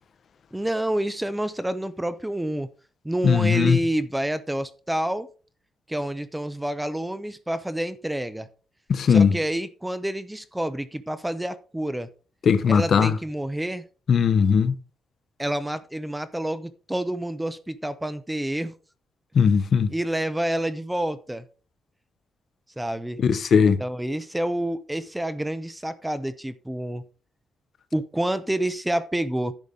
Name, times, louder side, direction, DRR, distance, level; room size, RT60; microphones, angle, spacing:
voice 1, 0.5-2.7 3.0-5.3 5.9-8.5 9.1-12.1 12.7-13.8 15.4-18.7 19.9-21.4 22.8-23.2 23.8-27.0 27.9-29.5, right 1 dB, 5° right, 0.6 m, -28 dB
voice 2, 3.2-3.8 8.9-9.4 12.4-13.2 14.1-14.7 19.3-19.9 23.2-23.8, left 6 dB, 45° left, 0.8 m, -19 dB
10.5 x 6.9 x 3.7 m
cardioid pair, 155°, 0 cm